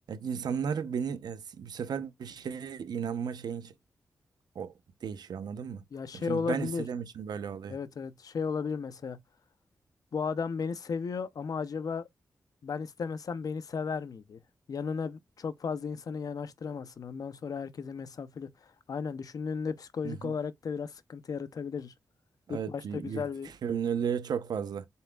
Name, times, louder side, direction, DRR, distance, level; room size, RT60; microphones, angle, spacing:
voice 1, 0.1-3.7 4.6-4.7 5.0-5.8 6.1-7.8 20.0-20.3 22.5-23.2 23.6-24.9, right 7 dB, 80° right, 0.7 m, -34 dB
voice 2, 5.9-6.9 7.7-9.2 10.1-12.1 12.6-14.4 14.7-21.9 22.5-23.5, left 5 dB, 60° left, 0.6 m, -35 dB
5.5 x 4.3 x 2.3 m
cardioid pair, 85°, 7 cm